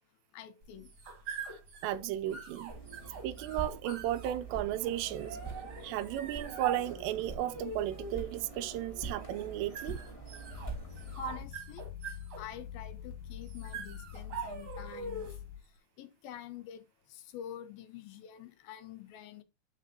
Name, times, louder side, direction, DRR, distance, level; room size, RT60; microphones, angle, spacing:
voice 1, 0.3-0.9 11.2-11.9 12.4-15.3 16.0-19.4, left 10 dB, 70° left, 2.4 m, -47 dB
sound 1, 0.6-15.5, right 4 dB, 40° right, 2.0 m, -44 dB
voice 2, 1.8-2.7 3.2-5.4 5.8-10.0, right 13 dB, 85° right, 2.7 m, -34 dB
sound 2, 2.7-11.4, right 4 dB, 30° left, 0.5 m, -45 dB
sound 3, 10.5-15.6, left 11 dB, 90° left, 1.9 m, -45 dB
8.6 x 8.1 x 2.7 m
omnidirectional pair, 5.1 m